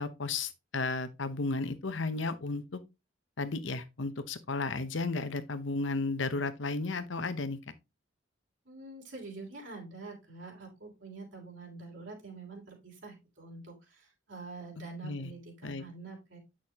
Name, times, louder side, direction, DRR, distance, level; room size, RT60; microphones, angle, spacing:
voice 1, 0.0-2.8 3.4-7.6 15.0-15.3 15.6-15.8, left 3 dB, 65° left, 0.9 m, -33 dB
voice 2, 8.6-16.4, right 3 dB, 65° right, 3.2 m, -46 dB
8.6 x 6.2 x 2.9 m
head